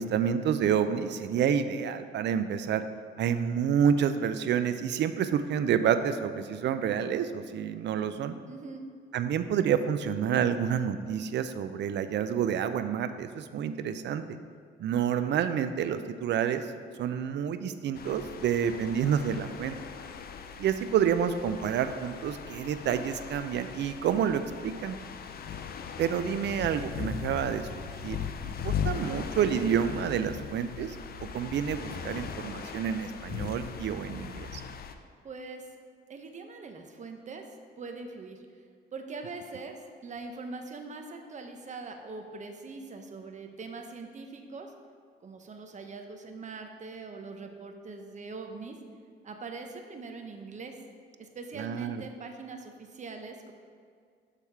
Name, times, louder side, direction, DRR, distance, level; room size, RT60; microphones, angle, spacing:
voice 1, 0.0-2.8 3.2-8.3 9.1-14.4 14.8-16.7 17.0-19.8 20.6-25.0 26.0-27.7 28.0-28.2 28.4-31.0 31.2-34.6 51.6-52.0, right 8 dB, 60° right, 10 dB, 0.4 m, -28 dB
voice 2, 8.5-8.9 35.2-35.7 36.1-37.4 37.8-38.6 38.9-44.7 45.2-48.8 49.2-50.8 51.2-53.5, right 3 dB, 35° right, 4 dB, 0.8 m, -42 dB
sound 1, 17.9-34.9, left 7 dB, 50° left, 0.5 m, -39 dB
6.4 x 3.5 x 5.7 m, 2.1 s
cardioid pair, 90°, 20 cm